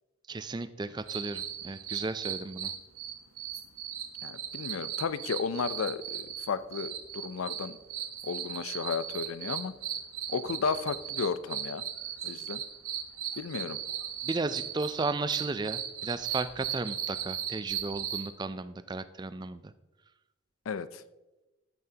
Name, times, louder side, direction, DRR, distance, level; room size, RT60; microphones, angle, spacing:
voice 1, 0.3-2.7 14.2-19.7, right 3 dB, 20° right, 13 dB, 0.3 m, -34 dB
sound 1, 1.1-18.3, right 9 dB, 90° right, 1.0 m, -37 dB
voice 2, 4.2-7.8 8.2-9.7 10.3-11.8 12.2-12.6 13.4-13.8 20.7-21.0, left 5 dB, 80° left, 15 dB, 0.5 m, -33 dB
13.5 x 7.5 x 2.8 m, 1.1 s
head